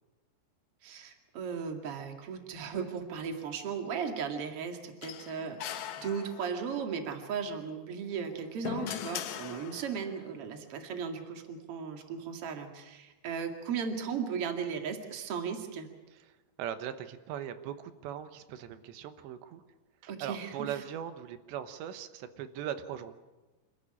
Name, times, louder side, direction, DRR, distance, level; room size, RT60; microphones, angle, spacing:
voice 1, 0.8-15.9 20.1-20.7, right 6 dB, 40° right, 5 dB, 2.4 m, -36 dB
sound 1, 5.0-6.8 8.1-10.1, left 10 dB, 75° left, 3.3 m, -40 dB
voice 2, 16.6-19.6 20.0-23.1, right 10 dB, 85° right, 10 dB, 3.3 m, -39 dB
26.5 x 13.5 x 10.0 m, 1.2 s
omnidirectional pair, 5.1 m